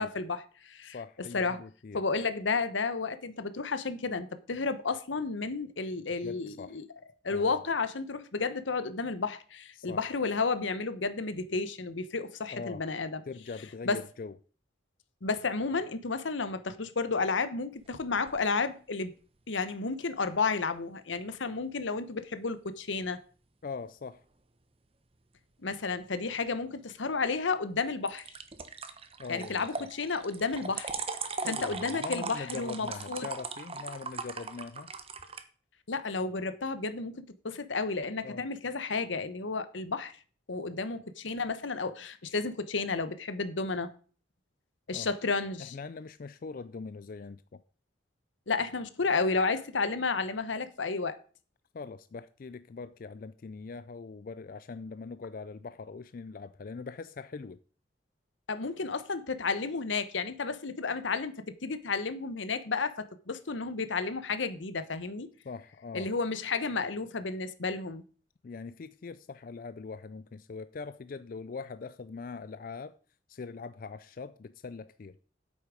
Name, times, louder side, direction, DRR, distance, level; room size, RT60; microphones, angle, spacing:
voice 1, 0.0-1.0 1.3-1.6 1.9-6.9 7.2-13.2 13.8-14.0 15.2-19.1 19.5-23.2 25.6-28.3 29.3-30.9 31.4-33.3 35.9-40.1 40.5-43.9 44.9-45.7 48.5-51.2 58.5-65.3 65.9-68.0, left 4 dB, 85° left, 1.0 m, -32 dB
voice 2, 0.8-2.0 6.2-6.8 7.3-7.5 9.7-10.0 12.5-12.8 13.3-14.3 23.6-24.2 29.2-29.9 30.6-30.7 31.4-34.9 38.2-38.5 44.9-45.1 45.6-47.6 51.7-57.6 65.4-66.1 68.4-73.0 73.3-75.2, left 4 dB, 45° left, 0.4 m, -42 dB
sound 1, 17.8-18.5 28.1-35.4, right 4 dB, 30° right, 0.9 m, -39 dB
8.5 x 8.1 x 5.0 m
head